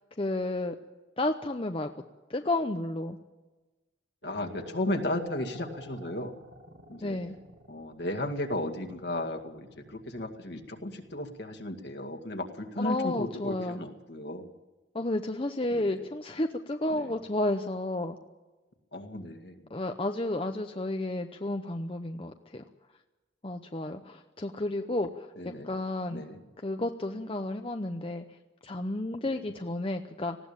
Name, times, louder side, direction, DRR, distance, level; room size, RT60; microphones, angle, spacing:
voice 1, 0.2-0.8 1.2-1.9 2.3-3.2 7.0-7.4 12.8-13.8 14.9-18.2 19.7-22.6 23.4-26.2 26.6-28.2 28.6-30.4, left 2 dB, 30° left, 6 dB, 0.7 m, -32 dB
voice 2, 4.2-6.3 6.9-7.2 7.7-14.5 15.7-15.8 16.9-17.1 18.9-19.6 25.4-25.8 26.1-26.4 29.2-29.4, left 1 dB, 60° left, 5 dB, 2.0 m, -35 dB
sound 1, 4.2-11.3, left 1 dB, 80° right, 5.3 m, -50 dB
19.5 x 16.0 x 8.8 m, 1.2 s
head